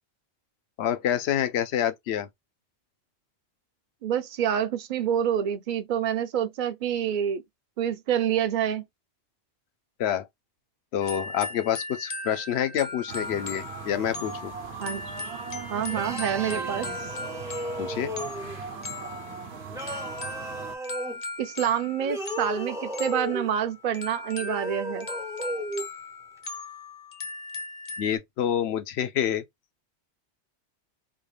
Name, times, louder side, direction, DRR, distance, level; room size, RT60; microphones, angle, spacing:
voice 1, 0.8-2.3 10.0-10.3 10.9-14.5 17.8-18.1 28.0-29.4, left 10 dB, 70° left, 0.9 m, -27 dB
voice 2, 4.0-7.4 7.8-8.8 14.8-15.0 15.7-17.1 21.4-25.1, right 9 dB, 55° right, 0.7 m, -27 dB
sound 1, 11.0-28.2, left 2 dB, 40° left, 0.8 m, -39 dB
sound 2, 13.1-20.8, right 5 dB, 70° right, 1.0 m, -39 dB
sound 3, 15.9-18.6 19.7-21.2 22.0-23.5 24.4-25.9, right 1 dB, 5° right, 0.5 m, -35 dB
3.7 x 2.3 x 3.2 m
omnidirectional pair, 1.1 m